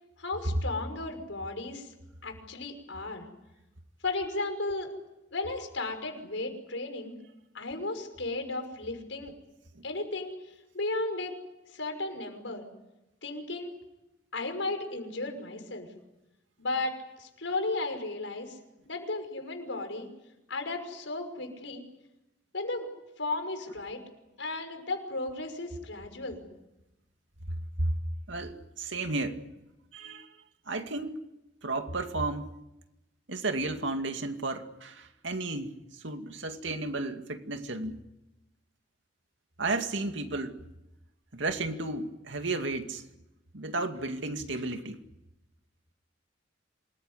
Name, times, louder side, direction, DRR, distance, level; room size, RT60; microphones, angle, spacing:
voice 1, 0.2-1.9 2.2-3.3 4.0-4.9 5.3-7.2 7.5-9.3 9.8-10.3 10.7-11.3 11.7-12.6 13.2-13.8 14.3-15.9 16.6-18.6 18.9-20.1 20.5-21.9 22.5-22.9 23.2-24.0 24.4-26.4, left 2 dB, 85° left, 5 dB, 5.9 m, -34 dB
voice 2, 28.3-29.4 29.9-30.3 30.7-31.1 31.6-32.5 33.3-35.7 36.0-38.0 39.6-40.6 41.3-43.0 43.5-45.0, right 2 dB, 80° right, 6 dB, 2.3 m, -33 dB
27.5 x 21.0 x 9.8 m, 0.94 s
head